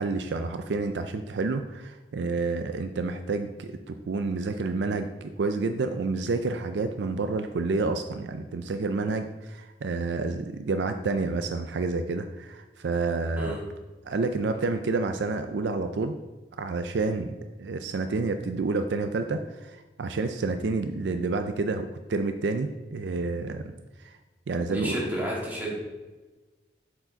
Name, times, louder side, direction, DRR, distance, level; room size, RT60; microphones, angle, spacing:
voice 1, 0.0-13.6 14.0-16.2 16.6-23.7 24.0-24.2 24.5-25.0, right 3 dB, 70° right, 8 dB, 0.4 m, -29 dB
voice 2, 24.7-25.7, right 1 dB, 10° right, -6 dB, 2.3 m, -31 dB
7.5 x 4.9 x 3.9 m, 1.2 s
head